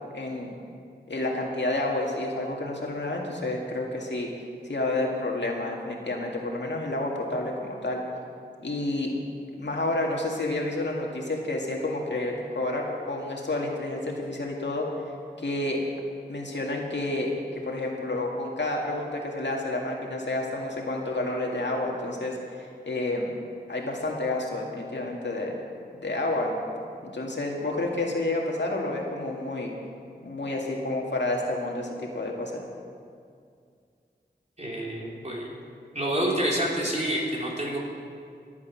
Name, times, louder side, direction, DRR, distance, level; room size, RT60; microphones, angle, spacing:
voice 1, 0.1-0.5 1.1-4.3 4.6-8.0 8.6-9.1 9.5-14.9 15.4-15.8 16.3-23.4 23.7-25.6 25.9-26.6 27.0-29.7 30.2-32.6, left 2 dB, 80° left, -1 dB, 2.0 m, -30 dB
voice 2, 34.6-35.5 35.9-37.8, right 1 dB, 40° right, -4 dB, 3.6 m, -28 dB
21.5 x 8.5 x 5.8 m, 2.3 s
wide cardioid pair, 55°, 18 cm